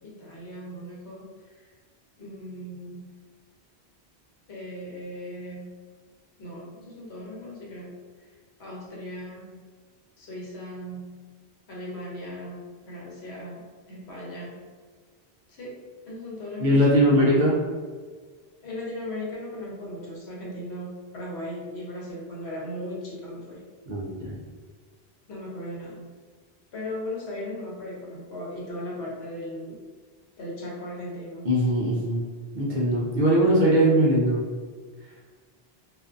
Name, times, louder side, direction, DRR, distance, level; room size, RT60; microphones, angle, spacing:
voice 1, 0.0-1.7 2.2-3.1 4.5-5.8 6.4-8.0 8.6-9.6 10.2-11.1 11.7-14.7 15.5-17.5 18.6-23.7 25.3-26.1 26.7-29.8 30.4-31.5, left 1 dB, 80° left, -4 dB, 1.0 m, -37 dB
voice 2, 16.6-17.6 23.9-24.4 31.4-32.3 32.5-34.4, equal, 55° right, -4 dB, 0.6 m, -21 dB
2.4 x 2.4 x 2.4 m, 1.5 s
omnidirectional pair, 1.1 m